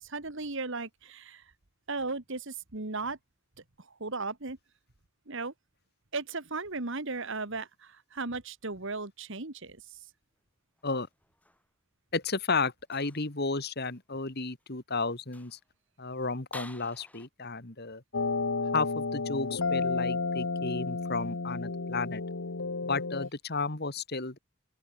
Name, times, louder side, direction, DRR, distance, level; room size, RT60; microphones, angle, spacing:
voice 1, 0.0-1.4 1.9-3.2 4.0-4.6 5.3-5.5 6.1-9.8, right 3 dB, 55° right, 1.8 m, -36 dB
sound 1, 10.8-11.7 12.9-13.3 13.8-14.0 14.6-14.7 15.2-15.7 16.5-17.3, left 2 dB, 5° left, 5.4 m, -49 dB
voice 2, 12.1-15.6 16.0-18.0 18.7-22.2 22.8-24.4, left 3 dB, 45° left, 2.0 m, -33 dB
sound 2, 18.1-23.3, left 3 dB, 60° left, 1.0 m, -32 dB
open air
head